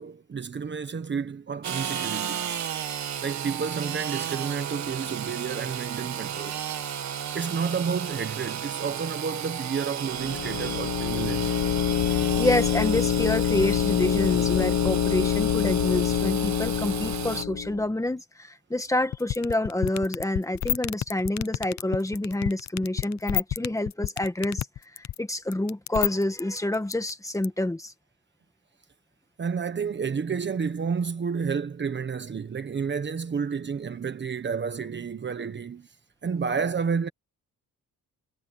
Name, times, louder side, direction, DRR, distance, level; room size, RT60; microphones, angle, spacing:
voice 1, 0.0-2.6 3.2-6.6 7.3-11.6 29.4-35.9 36.2-37.1, right 6 dB, 35° right, 1.3 m, -30 dB
Engine / Sawing, 1.6-17.4, right 9 dB, 60° right, 1.6 m, -34 dB
sound 1, 10.1-17.9, left 10 dB, 90° left, 1.5 m, -26 dB
voice 2, 12.4-24.7 25.0-27.9, left 1 dB, 10° left, 1.9 m, -28 dB
sound 2, 19.1-27.4, left 12 dB, 60° left, 0.7 m, -28 dB
cardioid pair, 135°, 32 cm